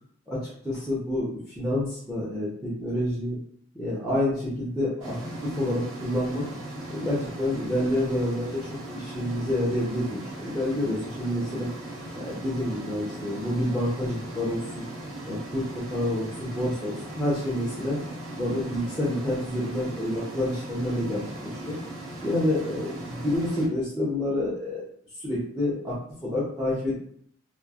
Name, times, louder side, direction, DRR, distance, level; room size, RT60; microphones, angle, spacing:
voice 1, 0.3-3.4 3.7-5.2 5.4-6.4 6.9-8.6 8.9-11.7 12.1-14.9 15.3-15.6 15.9-18.0 18.4-21.8 22.2-24.9 25.2-27.0, left 1 dB, ahead, -6 dB, 0.5 m, -28 dB
sound 1, 5.0-23.7, right 1 dB, 80° right, 0.9 m, -38 dB
3.0 x 2.3 x 2.3 m, 0.65 s
head